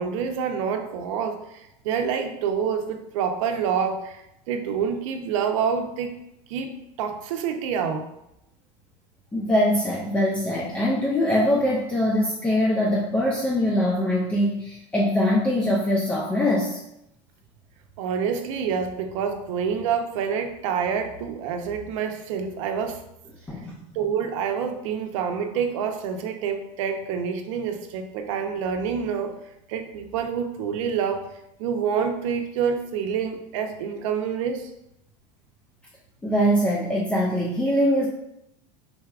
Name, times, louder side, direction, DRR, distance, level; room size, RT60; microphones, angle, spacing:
voice 1, 0.0-6.2 6.5-8.1 18.0-23.0 23.9-29.3 29.7-31.2 31.6-34.7, right 7 dB, 85° right, 5 dB, 0.6 m, -27 dB
voice 2, 9.3-16.8 23.5-23.8 36.2-38.1, left 1 dB, 10° left, -4 dB, 0.4 m, -22 dB
4.6 x 4.0 x 2.4 m, 0.83 s
cardioid pair, 165°, 16 cm